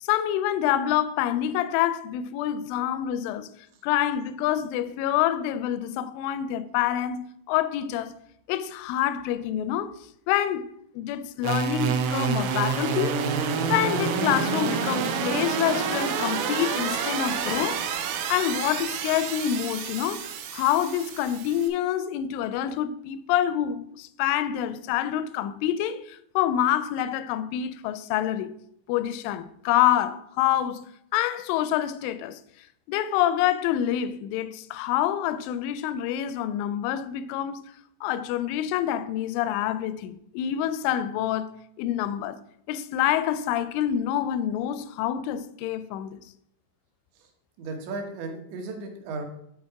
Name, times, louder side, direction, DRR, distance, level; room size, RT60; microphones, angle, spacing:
voice 1, 0.0-3.5 3.8-8.1 8.5-9.9 10.3-10.7 11.0-13.4 13.7-17.9 18.3-28.5 28.9-32.4 32.9-37.6 38.0-42.4 42.7-46.2, left 11 dB, 85° left, 2.8 m, -27 dB
sound 1, 11.4-21.7, right 6 dB, 90° right, 3.5 m, -28 dB
voice 2, 47.6-49.3, right 3 dB, 70° right, 3.2 m, -35 dB
9.7 x 4.2 x 4.7 m
omnidirectional pair, 5.7 m